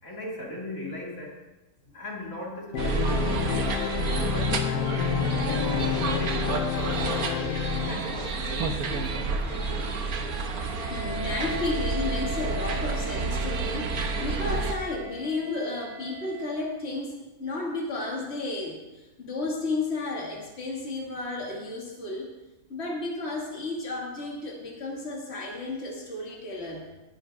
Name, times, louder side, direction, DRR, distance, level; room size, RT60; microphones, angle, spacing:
voice 1, 0.0-1.4 1.9-3.7 4.3-5.0 6.1-9.9, left 1 dB, 65° left, -3 dB, 2.9 m, -39 dB
Organ, 2.7-8.5, left 8 dB, 85° left, 1.2 m, -29 dB
sound 1, 2.8-14.7, right 4 dB, 75° right, 1.7 m, -30 dB
Wind instrument woodwind instrument, 10.5-16.7, left 1 dB, 30° right, 3.2 m, -40 dB
voice 2, 10.9-17.1 17.4-18.8 19.2-22.3 22.7-26.8, left 3 dB, 45° left, -2 dB, 2.7 m, -32 dB
19.5 x 10.5 x 3.7 m, 1.1 s
omnidirectional pair, 1.6 m